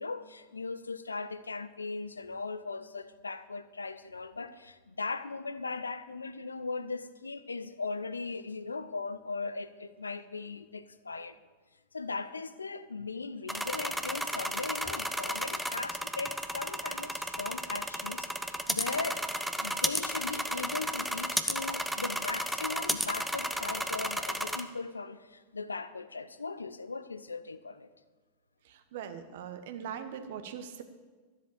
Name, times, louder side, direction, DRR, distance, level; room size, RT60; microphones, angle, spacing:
voice 1, 0.0-11.4 11.9-19.2 19.6-27.9, left 4 dB, 75° left, 0.6 m, -38 dB
sound 1, 13.5-24.6, equal, ahead, 0.7 m, -33 dB
voice 2, 28.6-30.8, right 8 dB, 55° right, 1.1 m, -41 dB
12.5 x 7.9 x 7.3 m
figure-of-eight pair, 90°, 0 cm